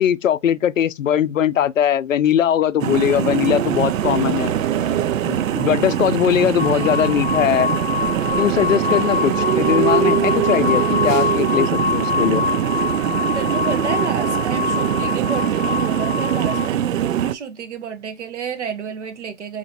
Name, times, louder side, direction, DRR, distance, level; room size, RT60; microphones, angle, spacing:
voice 1, 0.0-4.5 5.3-7.7 8.4-12.5, left 9 dB, 75° left, 0.5 m, -20 dB
sound 1, 2.8-17.3, right 10 dB, 80° right, 0.5 m, -22 dB
sound 2, 3.8-12.6, left 5 dB, 20° left, 0.8 m, -45 dB
sound 3, 6.6-16.7, left 6 dB, 20° right, 0.6 m, -25 dB
voice 2, 6.7-7.1 13.3-19.6, right 6 dB, 60° right, 1.2 m, -30 dB
4.3 x 3.0 x 2.7 m
hypercardioid pair, 145°, 39 cm